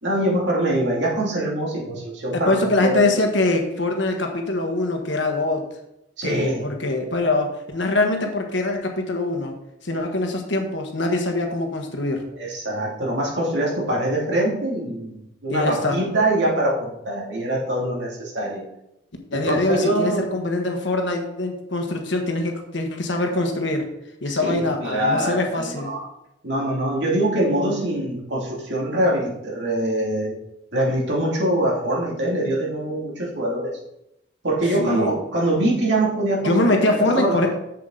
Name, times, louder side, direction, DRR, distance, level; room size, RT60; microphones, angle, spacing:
voice 1, 0.0-3.1 6.2-6.7 12.4-18.6 19.3-20.3 24.3-26.1 26.4-30.4 30.7-33.8 34.4-37.5, right 1 dB, 65° right, -3 dB, 2.6 m, -24 dB
voice 2, 2.3-5.6 6.2-9.5 9.8-12.2 15.5-16.0 19.3-23.9 24.2-25.9 34.8-35.1 36.4-37.5, left 2 dB, 70° left, 3 dB, 1.4 m, -23 dB
7.5 x 7.4 x 3.9 m, 0.84 s
head